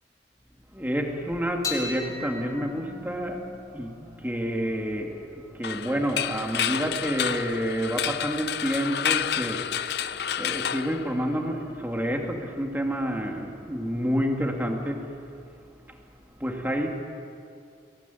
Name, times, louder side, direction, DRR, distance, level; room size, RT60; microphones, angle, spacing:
voice 1, 0.7-15.4 15.9-16.0 16.3-17.0, equal, 10° right, 2 dB, 2.4 m, -29 dB
sound 1, 1.6-8.2, left 3 dB, 20° left, 4.3 m, -41 dB
sound 2, 5.6-11.6, left 9 dB, 65° left, 0.6 m, -30 dB
23.0 x 17.5 x 9.4 m, 2.5 s
head